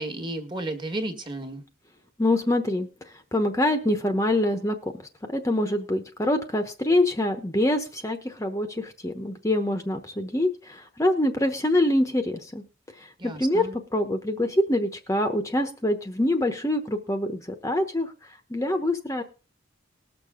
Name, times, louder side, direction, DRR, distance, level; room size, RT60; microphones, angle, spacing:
voice 1, 0.0-1.6 13.2-13.8, right 1 dB, 25° right, 6 dB, 1.6 m, -33 dB
voice 2, 2.2-2.9 3.3-4.9 5.3-12.6 13.0-13.7 13.9-18.1 18.5-19.2, left 1 dB, 15° left, 6 dB, 0.9 m, -25 dB
20.0 x 6.8 x 3.7 m, 0.33 s
head